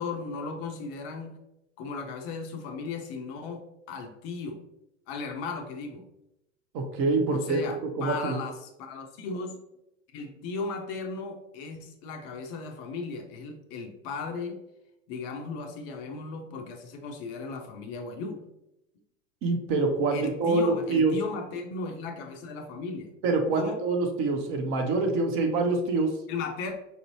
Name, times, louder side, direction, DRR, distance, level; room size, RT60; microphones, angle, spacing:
voice 1, 0.0-1.4 1.8-4.6 5.1-6.1 7.3-9.6 10.1-14.6 15.1-18.4 20.1-23.1 23.5-23.8 26.3-26.7, left 4 dB, 30° left, 4 dB, 0.4 m, -36 dB
voice 2, 6.7-7.6 8.0-8.4 19.4-21.1 23.2-26.1, right 3 dB, 30° right, 4 dB, 0.7 m, -25 dB
5.3 x 2.5 x 2.9 m, 0.87 s
figure-of-eight pair, 85°, 39 cm